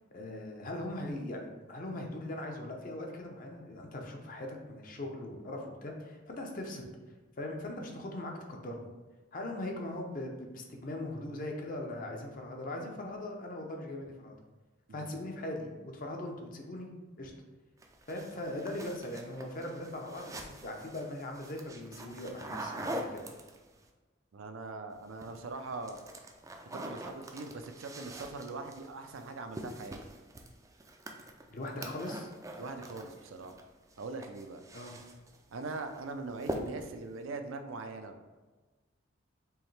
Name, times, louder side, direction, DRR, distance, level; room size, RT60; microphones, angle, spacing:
voice 1, 0.1-6.9 7.4-8.9 9.3-14.3 14.9-16.9 17.2-17.3 18.1-23.2 31.5-32.3 34.7-34.9, left 1 dB, 45° left, 2 dB, 0.6 m, -40 dB
voice 2, 14.9-15.2 24.3-26.0 26.7-30.0 32.6-33.5 34.0-34.6 35.5-38.2, right 3 dB, 85° right, 6 dB, 0.5 m, -41 dB
sound 1, 17.8-23.8 25.0-25.4 25.7-33.6 33.9-35.4 35.7-36.0 36.4-37.0, right 1 dB, 15° right, 0.3 m, -44 dB
4.7 x 3.1 x 3.2 m, 1.3 s
head